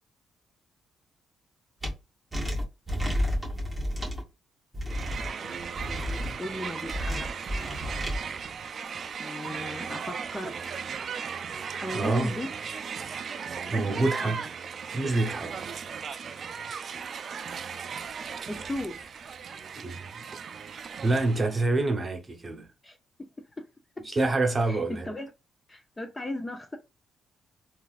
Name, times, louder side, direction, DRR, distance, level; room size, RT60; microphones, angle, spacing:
sound 1, 1.8-1.9 2.3-4.2 4.7-5.3 5.8-6.3 6.9-8.2, equal, 10° right, 1.5 m, -31 dB
Crowd, 4.9-21.6, right 6 dB, 50° right, 0.4 m, -37 dB
voice 1, 5.4-7.6 9.2-10.7 11.7-12.5 13.6-14.5 18.5-19.1 22.8-23.3 24.7-25.3 25.7-26.8, left 1 dB, 20° left, 0.7 m, -37 dB
voice 2, 11.9-12.3 13.7-14.4 14.9-15.5 19.8-20.1 21.0-22.7 24.1-25.1, right 2 dB, 25° right, 1.0 m, -26 dB
3.8 x 2.5 x 2.5 m
cardioid pair, 90°, 0 cm